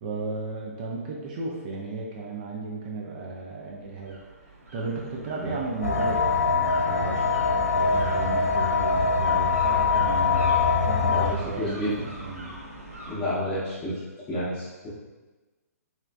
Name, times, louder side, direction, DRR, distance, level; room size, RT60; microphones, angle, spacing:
voice 1, 0.0-4.2 4.4-12.6, right 3 dB, 30° right, -2 dB, 0.4 m, -35 dB
sound 1, 3.8-13.2, right 2 dB, 65° right, 0.8 m, -42 dB
sound 2, 5.8-11.3, left 5 dB, 65° left, 0.4 m, -23 dB
voice 2, 11.1-11.9 13.1-14.0 14.3-14.9, left 1 dB, 15° left, -12 dB, 0.7 m, -30 dB
3.1 x 3.0 x 2.3 m, 1.2 s
figure-of-eight pair, 125°, 9 cm